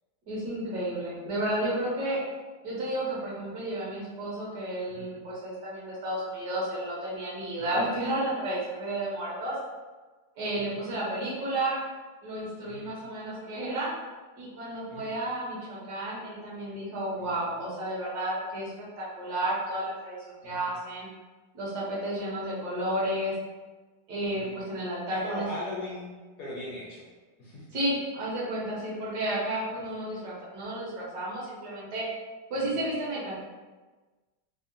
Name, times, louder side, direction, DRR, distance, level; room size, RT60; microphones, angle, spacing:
voice 1, 0.3-2.2 2.6-9.6 10.3-11.8 12.2-13.9 14.4-18.7 19.0-20.2 20.4-21.1 21.5-23.3 24.1-25.5 27.7-32.1 32.5-33.4, right 1 dB, 70° right, -7 dB, 1.4 m, -32 dB
voice 2, 25.1-26.1 26.4-27.0 27.4-27.7 32.6-32.7, left 1 dB, 65° left, -6 dB, 0.9 m, -39 dB
3.5 x 2.1 x 2.5 m, 1.3 s
omnidirectional pair, 1.9 m